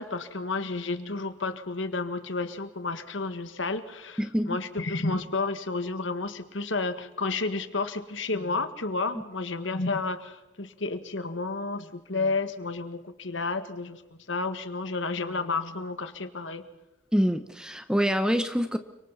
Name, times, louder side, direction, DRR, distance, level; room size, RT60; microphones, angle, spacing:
voice 1, 0.0-4.2 4.5-14.0 14.3-16.6, left 3 dB, 80° left, 9 dB, 1.8 m, -31 dB
voice 2, 4.2-4.6 17.1-18.8, equal, 5° right, 8 dB, 0.9 m, -25 dB
30.0 x 25.0 x 4.2 m, 1.0 s
head